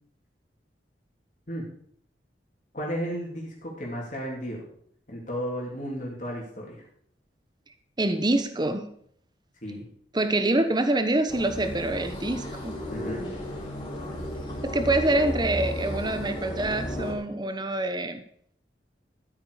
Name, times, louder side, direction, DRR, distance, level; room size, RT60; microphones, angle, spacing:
voice 1, 2.7-4.6 5.1-6.8 9.6-9.8 12.9-13.3, equal, 45° left, -2 dB, 3.3 m, -33 dB
voice 2, 8.0-8.9 10.1-12.8 14.6-18.2, right 2 dB, 25° right, 8 dB, 1.0 m, -25 dB
sound 1, 11.3-17.1, equal, 25° left, 3.6 m, -34 dB
13.5 x 8.9 x 5.0 m, 0.63 s
head